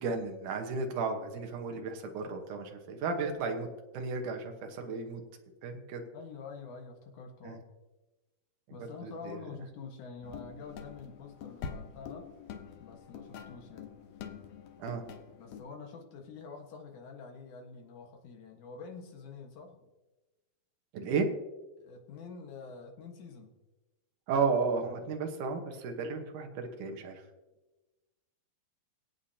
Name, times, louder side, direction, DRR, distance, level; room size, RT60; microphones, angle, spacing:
voice 1, 0.0-3.7 3.9-5.2 5.6-6.0 7.4-7.6 8.7-9.4 14.8-15.0 20.9-21.3 24.3-27.2, right 4 dB, 65° right, 4 dB, 2.5 m, -33 dB
voice 2, 6.1-7.6 8.7-12.3 12.8-14.0 15.4-19.9 21.8-23.5, left 5 dB, 60° left, 2 dB, 2.7 m, -47 dB
sound 1, 10.2-15.6, left 6 dB, 85° left, 1.5 m, -45 dB
24.0 x 8.4 x 2.9 m, 1.1 s
omnidirectional pair, 4.3 m